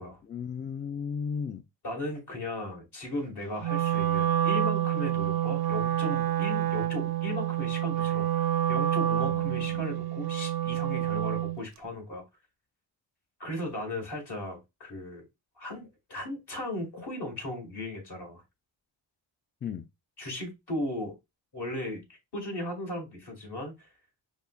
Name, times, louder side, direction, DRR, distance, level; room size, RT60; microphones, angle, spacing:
voice 1, 0.3-1.6 9.3-9.9 14.0-14.1 19.6-19.9, left 6 dB, 25° left, 0.3 m, -35 dB
voice 2, 1.8-12.2 13.4-15.2 15.6-18.4 20.2-21.1 21.5-22.0 22.3-23.9, left 1 dB, 60° left, 1.9 m, -36 dB
Wind instrument woodwind instrument, 3.6-11.6, right 12 dB, 55° right, 0.5 m, -28 dB
5.2 x 2.1 x 2.3 m
cardioid pair, 75°, 46 cm